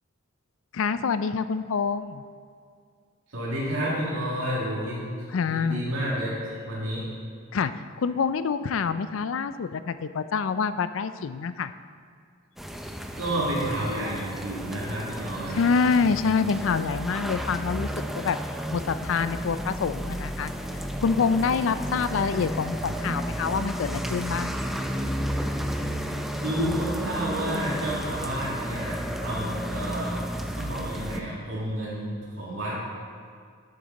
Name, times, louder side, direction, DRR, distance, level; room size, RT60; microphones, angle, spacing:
voice 1, 0.7-2.2 5.3-5.8 7.5-7.7 8.0-11.7 15.5-17.9 18.1-18.4 18.7-20.5 21.0-24.6, left 5 dB, 70° left, 12 dB, 0.4 m, -26 dB
voice 2, 3.3-7.1 13.2-15.6 26.4-30.3 30.6-32.7, right 1 dB, 75° right, -7 dB, 2.4 m, -30 dB
sound 1, 12.6-31.2, equal, ahead, 0.4 m, -32 dB
11.5 x 6.8 x 4.0 m, 2.1 s
head